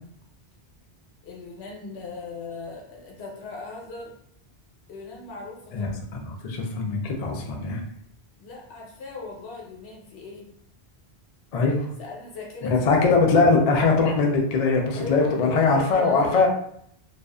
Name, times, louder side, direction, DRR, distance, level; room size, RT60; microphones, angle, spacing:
voice 1, 1.2-4.1 4.9-6.0 8.4-10.5 12.0-13.2 15.0-16.5, left 3 dB, 80° left, -1 dB, 1.0 m, -38 dB
voice 2, 5.7-7.8 11.5-11.9 12.7-16.5, left 4 dB, 55° left, 1 dB, 0.4 m, -21 dB
2.5 x 2.4 x 2.2 m, 0.70 s
omnidirectional pair, 1.1 m